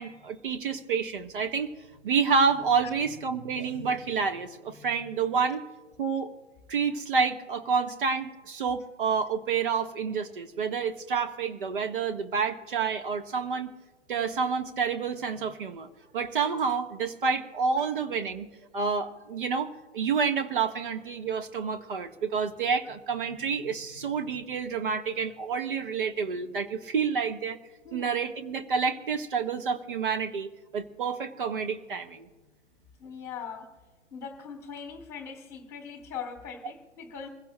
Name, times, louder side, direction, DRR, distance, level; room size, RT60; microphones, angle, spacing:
voice 1, 0.0-1.7 2.0-5.6 6.0-6.3 6.7-13.7 14.1-15.9 16.1-18.5 18.7-27.6 27.9-32.3, right 5 dB, 45° right, 6 dB, 1.4 m, -29 dB
voice 2, 33.0-33.7 34.1-37.3, left 6 dB, 5° left, 4 dB, 2.8 m, -41 dB
26.5 x 16.0 x 2.2 m, 1.3 s
figure-of-eight pair, 120°, 36 cm